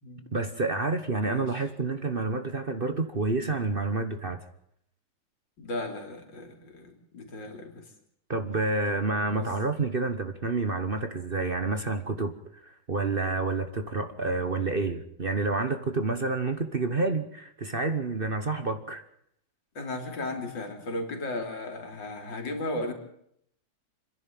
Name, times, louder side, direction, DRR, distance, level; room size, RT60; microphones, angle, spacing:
voice 1, 0.3-4.4 8.3-12.3 12.7-19.0, right 3 dB, 35° right, 8 dB, 1.2 m, -29 dB
voice 2, 5.6-7.8 9.3-9.5 19.8-22.9, left 2 dB, 80° left, 5 dB, 3.7 m, -35 dB
27.5 x 11.0 x 9.2 m, 0.73 s
omnidirectional pair, 2.0 m